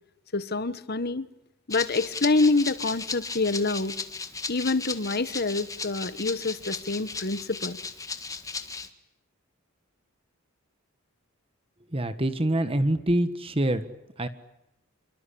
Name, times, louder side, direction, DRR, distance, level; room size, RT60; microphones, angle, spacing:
voice 1, 0.3-1.3 1.7-3.9 4.5-7.8, left 3 dB, 45° left, 14 dB, 1.3 m, -26 dB
Rattle (instrument), 1.7-8.9, left 4 dB, 15° left, 1.8 m, -36 dB
voice 2, 11.9-13.9 14.2-14.3, right 1 dB, 25° right, 10 dB, 1.6 m, -25 dB
28.0 x 24.5 x 8.7 m, 0.87 s
head